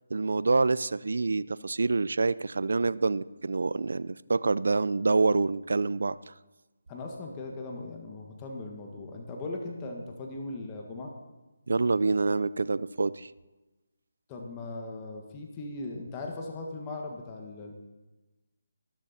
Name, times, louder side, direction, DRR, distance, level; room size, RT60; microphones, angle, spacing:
voice 1, 0.1-6.3 11.7-13.3, right 3 dB, 70° right, 18 dB, 0.5 m, -26 dB
voice 2, 6.9-11.1 14.3-17.7, left 2 dB, 20° left, 0 dB, 1.7 m, -39 dB
14.5 x 12.5 x 4.3 m, 1.1 s
figure-of-eight pair, 155°, 0 cm